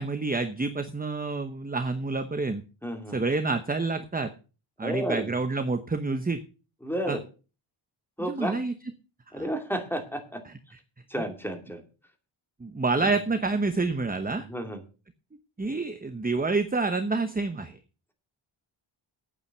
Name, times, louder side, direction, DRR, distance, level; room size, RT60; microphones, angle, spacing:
voice 1, 0.0-2.6 3.1-4.3 4.8-6.4 7.1-7.2 8.2-8.7 9.3-9.5 10.5-10.6 12.6-14.5 15.6-17.8, right 3 dB, 20° right, 9 dB, 0.9 m, -28 dB
voice 2, 2.8-3.2 4.8-5.3 6.8-7.2 8.2-8.5 9.3-10.4 11.1-11.8 13.0-13.2 14.5-14.8, equal, 5° left, 4 dB, 2.4 m, -32 dB
8.9 x 8.7 x 6.7 m, 0.34 s
wide cardioid pair, 130°, 49 cm